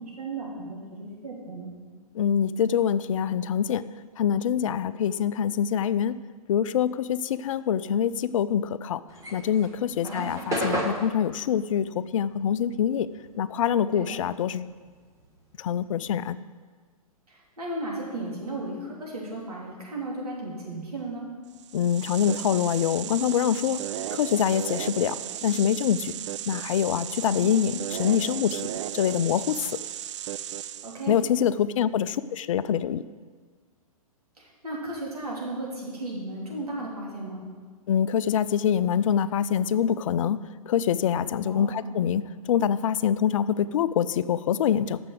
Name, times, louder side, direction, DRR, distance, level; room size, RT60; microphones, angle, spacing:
voice 1, 0.0-1.7 10.0-10.3 13.9-14.2 17.3-21.3 27.2-27.6 30.8-31.2 34.4-37.4 41.4-41.8, right 2 dB, 85° right, -4 dB, 3.3 m, -35 dB
voice 2, 2.1-3.9 4.2-6.2 6.5-9.0 9.3-13.1 13.4-14.7 15.6-16.4 21.7-23.8 24.1-25.2 25.4-26.1 26.5-29.7 31.1-33.0 37.9-45.0, left 9 dB, 60° left, 15 dB, 0.4 m, -25 dB
sound 1, 9.1-13.8 14.1-16.1, right 1 dB, 15° right, 1.2 m, -33 dB
sound 2, 21.6-31.2, right 11 dB, 50° right, 0.4 m, -35 dB
6.9 x 6.8 x 7.8 m, 1.5 s
hypercardioid pair, 120°, 19 cm